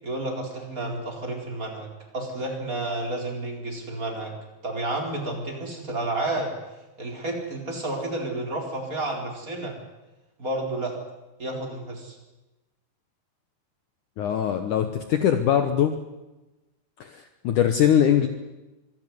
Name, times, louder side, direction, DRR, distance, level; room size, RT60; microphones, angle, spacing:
voice 1, 0.0-1.9 2.1-4.3 4.6-6.5 7.0-9.7 10.4-10.9 11.4-12.1, right 2 dB, 20° right, 1 dB, 4.4 m, -30 dB
voice 2, 14.2-16.0 17.0-18.3, left 9 dB, 70° left, 8 dB, 2.0 m, -22 dB
25.0 x 15.5 x 9.5 m, 1.1 s
omnidirectional pair, 5.0 m